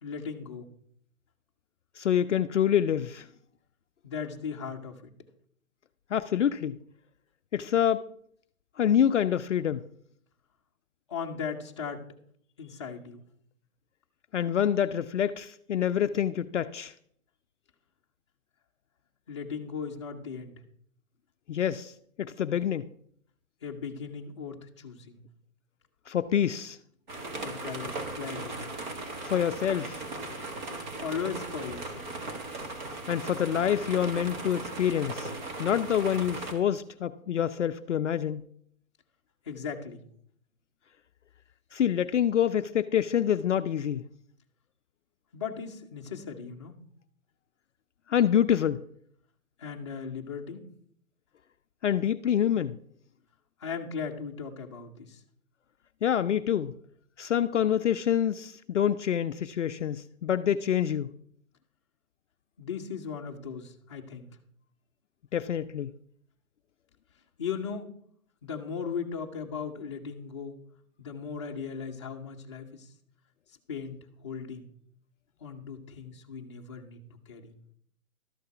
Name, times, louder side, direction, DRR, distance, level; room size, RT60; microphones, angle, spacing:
voice 1, 0.0-0.7 4.0-5.1 11.1-12.0 12.6-13.2 19.3-20.5 23.6-25.2 27.4-28.6 31.0-32.1 39.5-40.0 45.3-46.8 49.6-50.6 53.6-55.2 62.6-64.3 67.4-67.9 68.4-70.6 71.0-72.9 73.7-74.0 74.2-74.7 75.4-77.0 77.3-77.5, left 6 dB, 20° left, 0.8 m, -37 dB
voice 2, 2.0-3.3 6.1-6.8 7.5-8.0 8.8-9.8 14.3-16.9 21.5-21.9 22.2-22.9 26.1-26.8 29.2-30.0 33.1-35.3 35.6-38.5 41.7-44.0 48.1-48.8 51.8-52.8 56.0-56.7 57.2-61.1 65.3-65.9, left 9 dB, 60° left, 0.5 m, -26 dB
sound 1, 27.1-36.5, right 2 dB, 35° right, 1.6 m, -38 dB
12.5 x 6.8 x 5.8 m
hypercardioid pair, 170°, 42 cm